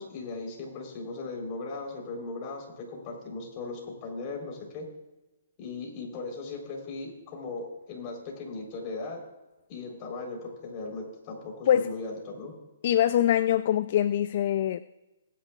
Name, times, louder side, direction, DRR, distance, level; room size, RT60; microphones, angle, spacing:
voice 1, 0.0-4.9 5.6-9.2 9.7-12.5, left 3 dB, 30° left, 3.9 m, -38 dB
voice 2, 12.8-14.8, left 11 dB, 50° left, 0.4 m, -23 dB
21.0 x 10.0 x 2.4 m
hypercardioid pair, 145°, 0 cm